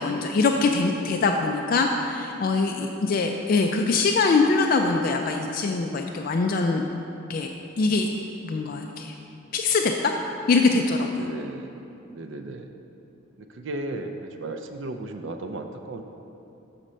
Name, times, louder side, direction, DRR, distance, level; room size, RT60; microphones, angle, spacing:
voice 1, 0.0-6.8 7.3-7.5 7.8-8.1 8.4-9.1 9.5-10.1 10.5-11.1, left 3 dB, 45° left, 3 dB, 0.3 m, -23 dB
voice 2, 2.8-3.1 11.2-11.7 12.1-12.7 13.4-16.0, right 2 dB, 65° right, 6 dB, 0.4 m, -35 dB
6.6 x 4.2 x 6.1 m, 2.8 s
head